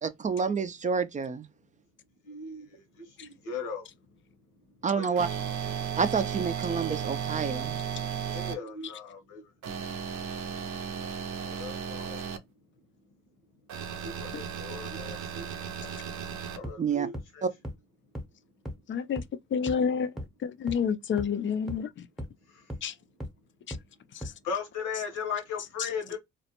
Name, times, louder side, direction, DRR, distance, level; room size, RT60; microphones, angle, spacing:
voice 1, 0.0-1.4 4.8-5.3 6.0-7.8 16.8-17.1 17.4-17.5, right 5 dB, 25° right, 0.4 m, -28 dB
voice 2, 2.3-3.8 5.0-5.2 8.3-9.4 11.4-12.2 14.0-15.5 16.5-17.4 24.4-26.2, left 5 dB, 85° left, 1.1 m, -37 dB
sound 1, 5.2-8.5 9.6-12.4 13.7-16.6, right 8 dB, 70° right, 0.6 m, -35 dB
sound 2, 16.6-16.7 17.1-17.2 17.6-17.7 18.1-18.2 18.7-18.8 19.2-19.3 19.7-19.8 20.2-20.3 20.7-20.8 21.2-21.3 21.7-21.8 22.2-22.3 22.7-22.8 23.2-23.3 23.7-23.8 24.2-24.3, equal, ahead, 0.8 m, -36 dB
voice 3, 18.9-19.2 19.5-20.1 20.4-22.1 22.8-22.9 23.7-23.8 24.1-24.3 25.8-25.9, left 7 dB, 40° left, 0.4 m, -29 dB
2.4 x 2.1 x 2.8 m
cardioid pair, 90°, 30 cm